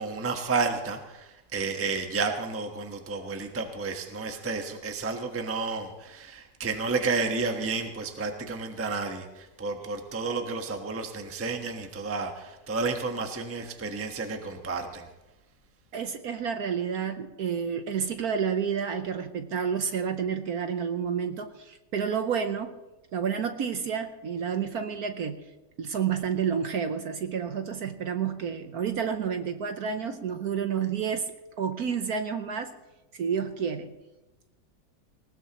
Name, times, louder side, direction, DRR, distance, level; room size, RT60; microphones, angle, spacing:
voice 1, 0.0-15.1, right 4 dB, 10° right, 4 dB, 0.9 m, -31 dB
voice 2, 15.9-22.7 23.1-25.4 25.8-31.3 31.6-32.7 33.1-33.9, right 7 dB, 60° right, 8 dB, 1.2 m, -30 dB
19.5 x 19.0 x 3.0 m, 1.0 s
omnidirectional pair, 2.0 m